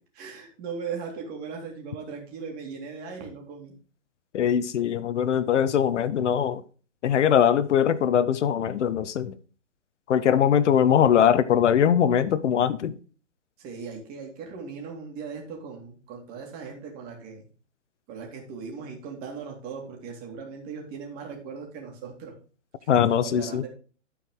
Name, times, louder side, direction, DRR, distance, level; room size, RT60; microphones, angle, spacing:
voice 1, 0.1-3.7 13.6-17.5 18.1-22.4 22.8-23.7, right 5 dB, 25° right, 2.3 m, -38 dB
voice 2, 4.3-6.6 7.0-9.3 10.1-12.9 22.9-23.6, left 9 dB, 70° left, 0.8 m, -21 dB
12.5 x 4.7 x 3.8 m
hypercardioid pair, 155°, 37 cm